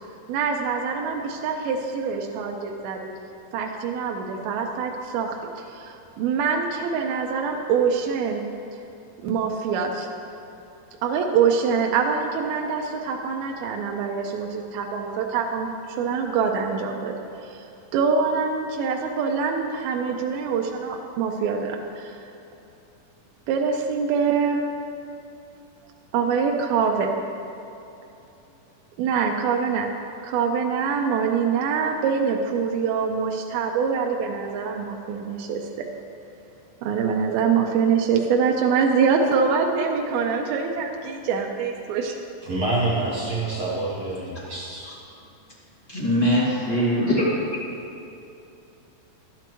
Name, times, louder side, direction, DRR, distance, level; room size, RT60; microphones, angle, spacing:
voice 1, 0.3-3.1 3.5-8.4 9.2-10.1 11.0-15.7 16.0-17.1 17.4-17.6 17.9-22.2 23.5-24.6 26.1-27.1 29.0-29.9 30.2-35.7 36.8-42.2, right 6 dB, 85° right, 1 dB, 2.5 m, -24 dB
voice 2, 42.4-44.9, right 2 dB, 65° right, -6 dB, 1.7 m, -27 dB
voice 3, 45.9-47.4, equal, 20° left, -8 dB, 1.0 m, -22 dB
12.0 x 10.5 x 3.0 m, 2.8 s
omnidirectional pair, 4.3 m